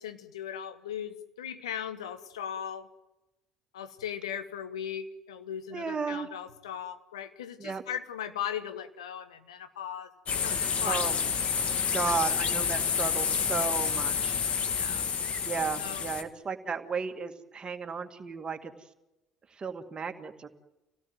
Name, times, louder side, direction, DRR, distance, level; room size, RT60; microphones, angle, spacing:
voice 1, 0.0-2.9 3.7-11.1 14.7-15.1 15.8-16.0, left 9 dB, 75° left, 9 dB, 1.4 m, -38 dB
voice 2, 5.7-6.3 7.6-7.8 10.8-11.2 11.9-14.3 15.5-18.7 19.5-20.5, right 5 dB, 30° right, 7 dB, 2.1 m, -34 dB
sound 1, 10.3-16.2, left 6 dB, 45° left, 1.9 m, -29 dB
27.0 x 17.5 x 9.3 m, 0.99 s
figure-of-eight pair, 55°, 3 cm